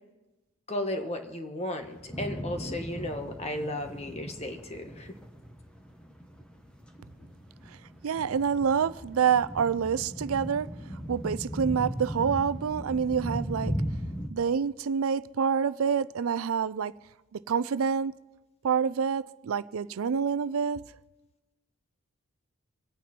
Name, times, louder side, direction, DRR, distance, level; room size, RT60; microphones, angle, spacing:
voice 1, 0.7-5.1, left 1 dB, 30° left, 1.4 m, -34 dB
sound 1, 1.8-14.3, equal, 5° left, 1.3 m, -38 dB
voice 2, 8.0-10.7 11.1-13.7 14.3-16.9 17.3-18.1 18.6-20.8, right 6 dB, 85° right, 0.4 m, -27 dB
25.5 x 9.2 x 4.4 m
head